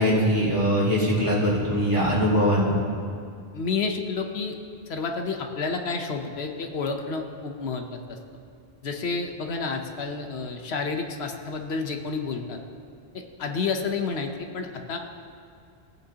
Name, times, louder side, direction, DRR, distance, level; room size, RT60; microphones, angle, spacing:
voice 1, 0.0-2.8, equal, 30° right, -8 dB, 2.9 m, -22 dB
voice 2, 3.5-4.6 4.9-8.2 8.8-12.6 13.1-15.0, left 4 dB, 80° left, 4 dB, 1.1 m, -30 dB
18.0 x 8.5 x 2.8 m, 2.3 s
omnidirectional pair, 1.1 m